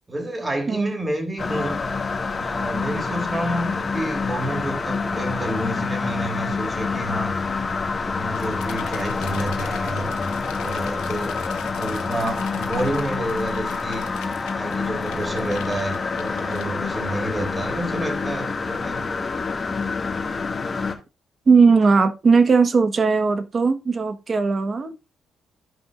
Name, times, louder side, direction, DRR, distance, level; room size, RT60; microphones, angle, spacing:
voice 1, 0.1-1.8 2.4-7.4 7.9-10.1 10.6-11.4 11.7-14.1 14.5-19.1, right 1 dB, 20° right, 3.4 m, -29 dB
sound 1, 1.4-20.9, left 4 dB, 35° left, 2.1 m, -27 dB
sound 2, 8.3-17.1, left 10 dB, 90° left, 1.0 m, -41 dB
voice 2, 21.5-24.9, right 4 dB, 40° right, 1.4 m, -18 dB
15.5 x 5.5 x 2.6 m
cardioid pair, 90°, 0 cm